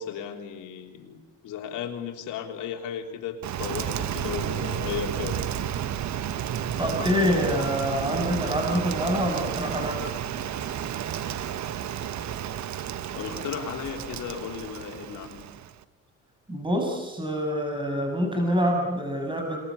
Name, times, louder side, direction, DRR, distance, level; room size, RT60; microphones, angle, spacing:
voice 1, 0.0-5.4 13.2-15.4, left 8 dB, 85° left, 3 dB, 3.7 m, -35 dB
Rain, 3.4-15.8, right 10 dB, 65° right, 1.3 m, -32 dB
voice 2, 6.8-10.0 16.5-19.6, equal, 15° right, 2 dB, 6.9 m, -26 dB
27.5 x 22.0 x 8.5 m, 1.1 s
cardioid pair, 90°, 30 cm